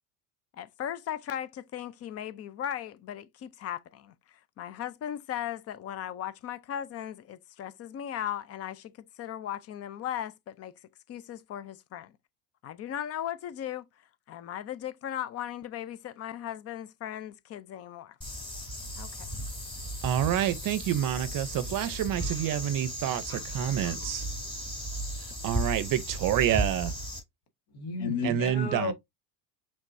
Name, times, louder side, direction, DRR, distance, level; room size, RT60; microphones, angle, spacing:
voice 1, 0.5-8.9 9.2-10.7 11.1-12.1 12.6-13.8 14.3-18.2 19.0-19.3, left 10 dB, 35° left, 0.4 m, -37 dB
sound 1, 18.2-27.2, right 1 dB, 10° left, 2.9 m, -35 dB
voice 2, 20.0-24.3 25.4-26.9 28.2-28.9, right 11 dB, 45° right, 0.6 m, -28 dB
voice 3, 27.7-28.9, left 4 dB, 55° left, 1.4 m, -32 dB
5.2 x 3.5 x 2.6 m
supercardioid pair, 120°, 48 cm